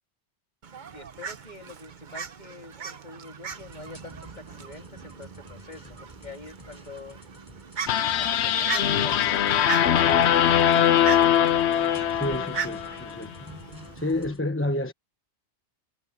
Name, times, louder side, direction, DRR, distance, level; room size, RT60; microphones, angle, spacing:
Fowl, 0.6-14.3, right 6 dB, 45° right, 1.0 m, -39 dB
voice 1, 0.9-7.2 7.5-7.6 8.2-10.5, left 3 dB, 40° left, 3.2 m, -46 dB
sound 1, 3.5-14.4, equal, 20° right, 6.3 m, -48 dB
sound 2, 7.9-13.2, left 9 dB, 80° left, 1.0 m, -22 dB
voice 2, 12.1-13.5 13.9-14.9, left 1 dB, 10° left, 1.0 m, -29 dB
omnidirectional pair, 1.1 m